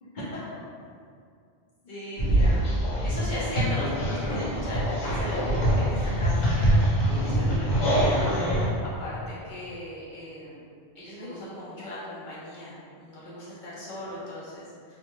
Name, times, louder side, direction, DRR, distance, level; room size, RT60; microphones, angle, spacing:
voice 1, 1.8-2.6 3.0-8.4 8.8-10.6 10.9-14.7, left 1 dB, 50° left, -9 dB, 0.9 m, -37 dB
sound 1, 2.2-8.7, right 1 dB, 90° left, 1.0 m, -24 dB
2.5 x 2.3 x 2.9 m, 2.3 s
omnidirectional pair, 1.1 m